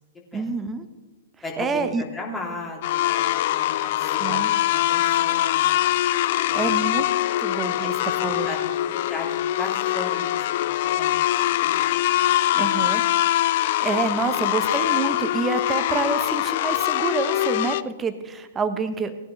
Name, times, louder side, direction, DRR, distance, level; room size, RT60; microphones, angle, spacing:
voice 1, 0.3-0.8 1.6-2.0 4.2-4.5 6.5-7.0 7.4-8.5 12.5-13.0 13.8-19.1, right 4 dB, 15° right, 10 dB, 1.0 m, -27 dB
voice 2, 1.4-3.2 3.5-5.9 6.5-6.8 7.7-8.1 8.5-8.6 9.1-11.8 12.1-12.2 14.1-14.2, left 2 dB, 15° left, -1 dB, 3.0 m, -37 dB
sound 1, 2.8-17.8, left 14 dB, 50° left, 0.4 m, -23 dB
19.0 x 10.5 x 3.3 m, 1.2 s
figure-of-eight pair, 110°, 0 cm